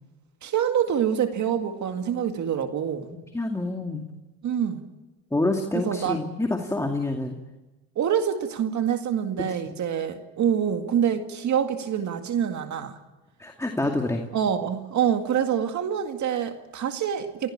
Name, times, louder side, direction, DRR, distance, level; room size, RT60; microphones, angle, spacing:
voice 1, 0.4-3.1 4.4-4.8 5.9-6.2 8.0-13.0 14.3-17.5, right 8 dB, 60° right, 6 dB, 2.1 m, -26 dB
voice 2, 3.3-4.0 5.3-7.4 9.7-9.8 13.4-14.2, left 2 dB, 10° left, 3 dB, 2.4 m, -27 dB
28.5 x 16.5 x 8.8 m, 1.1 s
cardioid pair, 90°, 33 cm